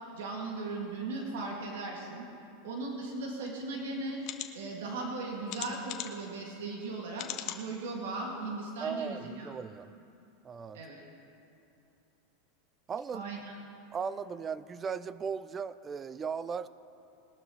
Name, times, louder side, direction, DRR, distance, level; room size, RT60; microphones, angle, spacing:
voice 1, 0.1-2.2 2.6-4.2 4.5-9.5 10.7-11.0 13.1-13.6, right 3 dB, 80° right, -1 dB, 2.3 m, -38 dB
sound 1, 3.5-3.6 4.2-4.5 5.5-6.3 7.2-7.6 8.2-8.3 8.6-8.7, left 13 dB, 45° left, 0.9 m, -39 dB
voice 2, 8.8-9.9 10.4-10.8 12.9-13.3 13.9-16.7, right 6 dB, 20° right, 16 dB, 0.3 m, -37 dB
20.5 x 12.0 x 3.2 m, 2.8 s
supercardioid pair, 150°, 0 cm